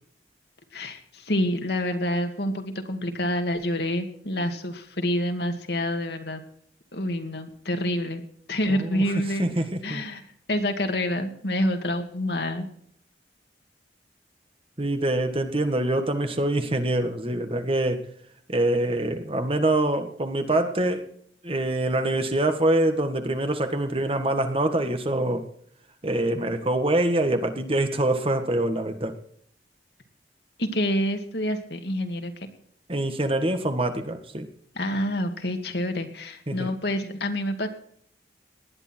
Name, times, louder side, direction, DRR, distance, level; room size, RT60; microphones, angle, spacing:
voice 1, 0.7-6.4 6.9-8.2 8.5-9.5 9.8-10.2 10.5-12.7 30.6-32.5 34.7-37.7, left 1 dB, 65° left, 5 dB, 2.3 m, -27 dB
voice 2, 8.7-9.0 9.4-10.0 14.8-18.0 18.5-21.0 21.4-25.4 26.0-29.2 32.9-34.5 36.5-36.7, right 1 dB, 30° right, 7 dB, 1.7 m, -25 dB
19.0 x 11.0 x 4.5 m, 0.62 s
head